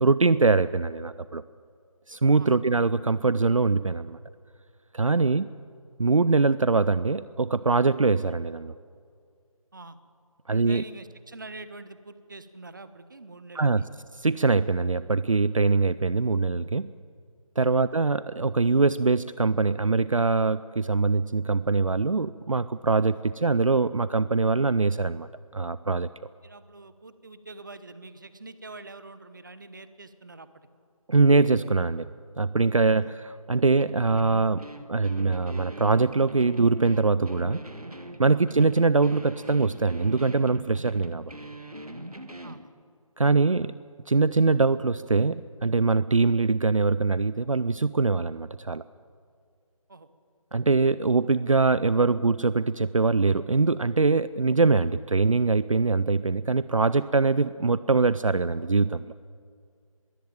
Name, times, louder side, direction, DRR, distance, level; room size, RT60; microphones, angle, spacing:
voice 1, 0.0-1.4 2.1-4.2 4.9-5.5 6.0-8.7 10.5-10.8 13.5-13.8 14.2-16.9 17.6-26.1 31.1-32.1 32.4-37.6 38.2-41.3 43.2-43.7 44.1-48.8 50.5-59.1, right 3 dB, 65° right, 17 dB, 0.5 m, -23 dB
voice 2, 10.5-13.9 17.6-17.8 26.4-30.7 33.0-33.1 38.3-38.4 42.4-42.7 49.9-50.1, right 3 dB, 35° right, 13 dB, 1.0 m, -45 dB
sound 1, 33.8-42.7, right 1 dB, 90° right, 1.8 m, -42 dB
22.0 x 16.0 x 9.1 m, 2.2 s
figure-of-eight pair, 165°, 18 cm